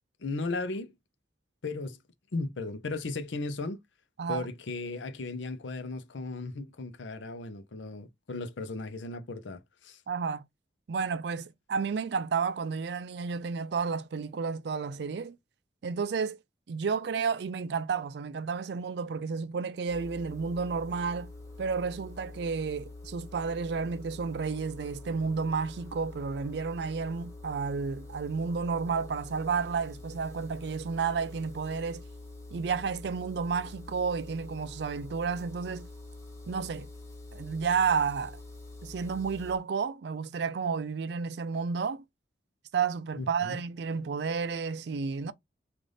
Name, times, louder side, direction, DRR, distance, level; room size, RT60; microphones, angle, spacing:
voice 1, 0.2-0.9 1.6-2.0 2.3-3.8 4.3-10.0 43.2-43.6, left 3 dB, 85° left, 0.6 m, -36 dB
voice 2, 10.1-10.5 10.9-15.4 15.8-16.4 16.7-21.3 21.6-32.0 32.5-35.9 36.5-36.9 37.3-38.4 38.8-42.0 42.7-45.3, right 5 dB, 65° right, 0.4 m, -31 dB
sound 1, 19.9-39.6, left 2 dB, 15° left, 1.3 m, -46 dB
3.3 x 2.5 x 3.8 m
head